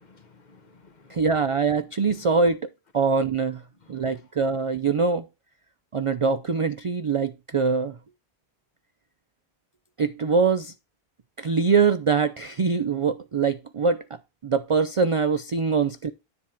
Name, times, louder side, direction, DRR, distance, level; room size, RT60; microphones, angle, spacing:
voice 1, 0.0-1.3 2.1-2.3 3.8-4.6 15.7-15.8, left 4 dB, 45° left, 1.1 m, -54 dB
voice 2, 1.1-2.7 2.9-3.6 3.9-5.3 5.9-8.0 10.0-10.7 11.4-14.0 14.4-16.1, right 5 dB, 45° right, 0.4 m, -23 dB
10.0 x 3.4 x 5.8 m
omnidirectional pair, 1.1 m